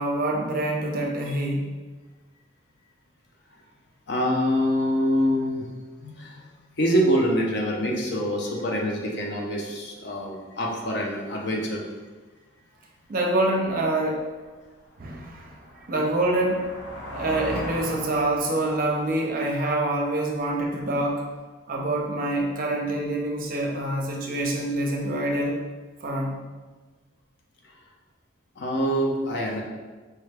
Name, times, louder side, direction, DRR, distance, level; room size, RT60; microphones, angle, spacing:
voice 1, 0.0-1.7 13.1-14.3 15.0-15.6 15.9-16.7 17.0-21.2 21.7-25.6 26.0-26.4, right 1 dB, 45° right, 0 dB, 0.5 m, -26 dB
voice 2, 4.1-5.7 6.0-6.5 6.8-11.8 15.2-15.3 17.1-17.2 28.6-29.6, equal, 55° left, -1 dB, 0.6 m, -25 dB
sound 1, 14.3-20.9, equal, 90° left, 1.3 m, -40 dB
4.5 x 2.2 x 3.3 m, 1.3 s
head